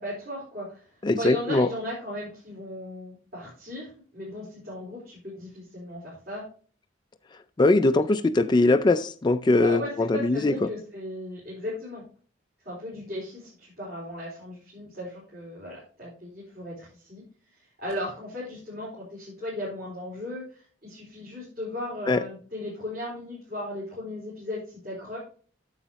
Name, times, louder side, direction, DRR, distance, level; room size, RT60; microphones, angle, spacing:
voice 1, 0.0-3.9 4.1-6.4 9.6-12.0 12.6-17.2 17.6-25.2, left 1 dB, 55° right, 4.1 m, -36 dB
voice 2, 1.0-1.7 7.6-10.7 22.1-22.2, left 2 dB, 25° left, 0.4 m, -21 dB
9.6 x 7.1 x 2.9 m
head